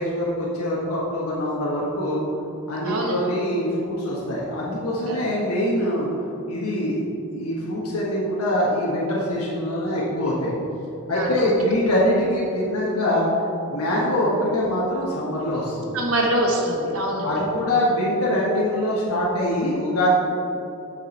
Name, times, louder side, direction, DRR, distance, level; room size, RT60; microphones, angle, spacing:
voice 1, 0.0-2.2 2.7-6.1 6.5-7.0 7.3-10.6 11.1-13.3 13.7-15.9 17.2-20.1, left 1 dB, 90° left, -5 dB, 1.2 m, -24 dB
voice 2, 2.8-3.2 5.1-5.2 11.1-11.3 15.9-17.4, right 1 dB, 75° right, 0 dB, 1.2 m, -24 dB
6.6 x 6.0 x 4.2 m, 2.9 s
head